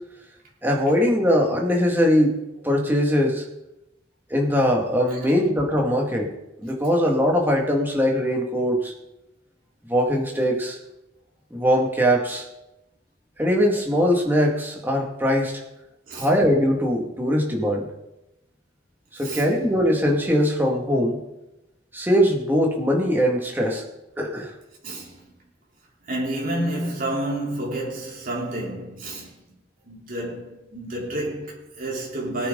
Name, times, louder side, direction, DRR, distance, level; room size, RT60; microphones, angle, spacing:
voice 1, 0.6-2.4 2.6-3.4 4.3-6.3 6.6-8.9 9.9-10.8 11.5-12.5 13.4-15.6 16.1-17.9 19.2-21.2 21.9-23.8 24.2-24.5, equal, 10° right, 2.1 m, -21 dB
voice 2, 19.2-19.5 24.8-25.2 26.0-29.3 29.8-32.5, right 1 dB, 50° right, 3.8 m, -30 dB
18.5 x 9.3 x 4.0 m
head